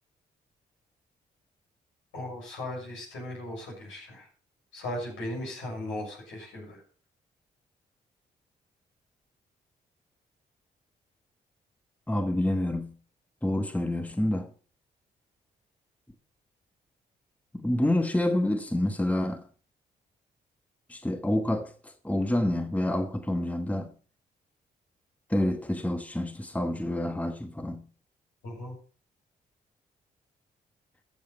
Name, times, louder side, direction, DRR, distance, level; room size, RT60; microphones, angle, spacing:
voice 1, 2.1-4.3 4.7-6.8 28.4-28.7, left 1 dB, 75° left, 6.6 m, -37 dB
voice 2, 12.1-12.9 13.4-14.5 17.5-19.4 20.9-23.9 25.3-27.8, left 1 dB, 5° left, 1.3 m, -28 dB
13.5 x 7.0 x 5.2 m
hypercardioid pair, 45°, 20 cm